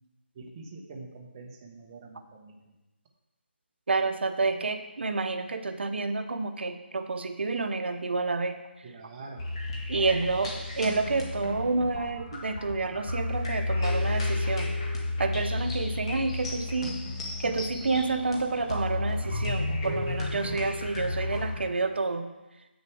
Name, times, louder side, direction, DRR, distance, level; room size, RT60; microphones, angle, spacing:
voice 1, 0.3-2.8 8.8-9.5, right 3 dB, 20° right, -1 dB, 0.9 m, -45 dB
voice 2, 3.9-8.6 9.9-14.7 15.2-17.0 17.4-22.3, right 3 dB, 70° right, 7 dB, 0.8 m, -29 dB
sound 1, 9.4-21.6, left 2 dB, 30° left, 1.5 m, -32 dB
7.9 x 6.6 x 4.6 m, 1.0 s
hypercardioid pair, 175°, 6 cm